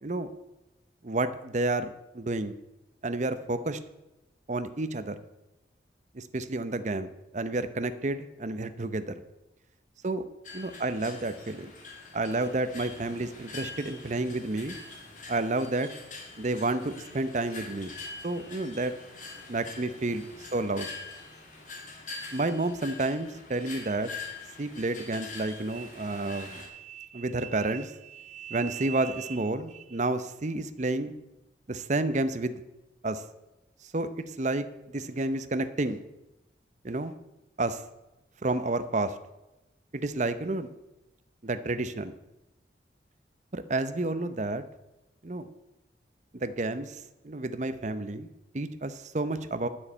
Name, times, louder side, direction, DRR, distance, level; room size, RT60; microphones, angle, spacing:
voice 1, 1.0-2.5 3.0-3.8 4.5-5.2 6.1-9.1 10.0-10.2 10.5-11.7 12.1-14.8 15.3-15.9 16.4-17.9 18.2-18.9 19.5-20.2 20.5-20.9 22.3-24.1 24.6-31.1 31.7-32.6 33.0-33.2 33.9-36.0 36.8-37.1 37.6-37.8 38.4-39.1 39.9-40.7 41.4-42.1 43.5-44.6 45.2-45.5 46.3-48.3 48.5-49.7, right 2 dB, 40° right, 11 dB, 0.7 m, -30 dB
sound 1, 10.4-26.7, left 3 dB, 45° left, 2.6 m, -44 dB
9.9 x 6.5 x 8.8 m, 0.97 s
head